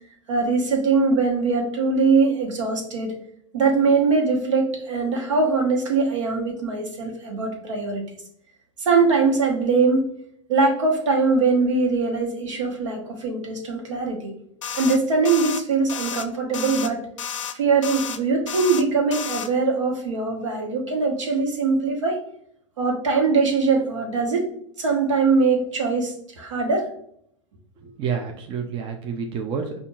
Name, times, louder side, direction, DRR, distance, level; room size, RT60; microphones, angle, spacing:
voice 1, 0.3-3.1 3.5-8.0 8.8-10.1 10.5-14.3 14.7-17.0 17.5-22.2 22.8-24.5 24.8-26.9, right 4 dB, 75° right, 1 dB, 1.2 m, -22 dB
sound 1, 14.6-15.0 15.3-15.6 15.9-16.3 16.5-16.9 17.2-17.5 17.8-18.2 18.5-18.8 19.1-19.5, left 8 dB, 80° left, 0.5 m, -31 dB
voice 2, 27.8-29.8, right 6 dB, 35° right, 4 dB, 0.6 m, -29 dB
5.2 x 2.5 x 2.4 m, 0.67 s
hypercardioid pair, 95°, 16 cm